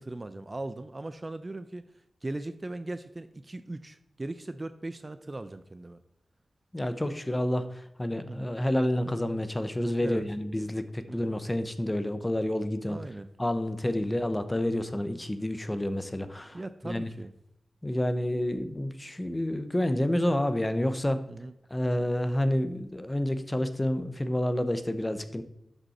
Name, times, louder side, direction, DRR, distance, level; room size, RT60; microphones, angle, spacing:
voice 1, 0.0-1.8 2.2-6.0 8.2-8.5 10.0-10.2 11.1-11.3 12.9-13.3 13.9-14.1 16.5-17.3 21.3-21.5, right 2 dB, 25° right, 11 dB, 0.4 m, -39 dB
voice 2, 6.7-13.0 13.4-17.1 17.8-21.3 21.7-25.4, left 1 dB, 15° left, 10 dB, 0.7 m, -29 dB
12.0 x 5.4 x 4.2 m, 0.81 s
wide cardioid pair, 135°, 0 cm